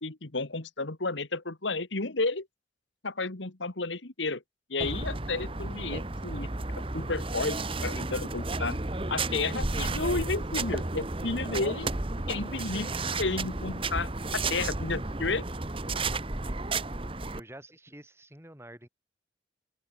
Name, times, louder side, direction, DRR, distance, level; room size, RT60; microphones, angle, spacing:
voice 1, 0.0-2.5 3.0-4.4 4.7-6.5 6.9-8.8 9.1-11.9 12.3-12.9 13.2-15.5, left 3 dB, 80° left, 1.9 m, -32 dB
sound 1, 4.8-17.4, right 2 dB, 30° right, 1.3 m, -32 dB
voice 2, 17.3-18.9, right 1 dB, 15° right, 8.0 m, -48 dB
open air
head